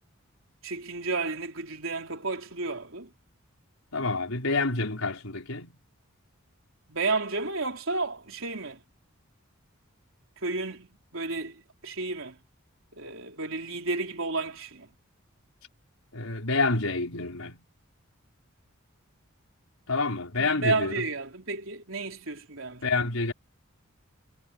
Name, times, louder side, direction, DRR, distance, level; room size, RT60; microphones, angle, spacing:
voice 1, 0.6-3.1 6.9-8.8 10.4-12.3 13.0-14.9 20.4-22.9, right 3 dB, 70° right, 4.1 m, -32 dB
voice 2, 3.9-5.8 16.1-17.6 19.9-21.0 22.8-23.3, left 3 dB, 90° left, 4.9 m, -28 dB
head